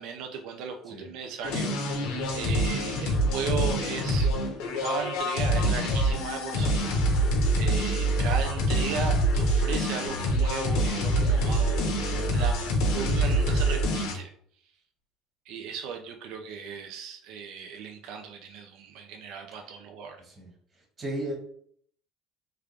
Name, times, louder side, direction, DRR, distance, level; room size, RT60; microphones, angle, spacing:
voice 1, 0.0-4.3 4.8-6.9 7.5-12.7 12.9-14.3 15.5-20.2, right 6 dB, 70° right, 3 dB, 0.4 m, -36 dB
sound 1, 1.4-14.1, right 1 dB, 80° left, 0.9 m, -25 dB
voice 2, 20.2-20.5 21.0-21.4, right 1 dB, 35° right, 0 dB, 1.4 m, -34 dB
3.3 x 2.4 x 3.3 m, 0.62 s
supercardioid pair, 115°, 0 cm